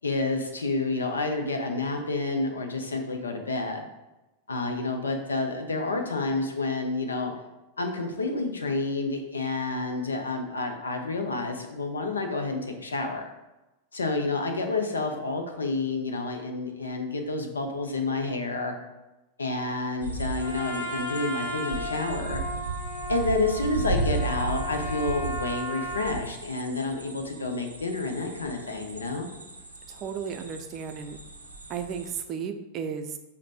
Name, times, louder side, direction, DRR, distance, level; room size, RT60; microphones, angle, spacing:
voice 1, 0.0-3.8 4.5-7.3 7.8-13.3 13.9-18.7 19.4-22.4 23.1-29.3, left 3 dB, 75° left, 4 dB, 0.6 m, -29 dB
Hilltop in Waitomo NZ Ambiance, 20.0-32.2, right 3 dB, 85° right, 0.5 m, -35 dB
Trumpet, 20.4-26.1, equal, 55° left, 0.9 m, -35 dB
voice 2, 29.9-31.2 31.7-33.2, right 7 dB, 35° right, 6 dB, 0.4 m, -34 dB
5.1 x 2.1 x 4.0 m, 1.0 s
figure-of-eight pair, 90°, 0 cm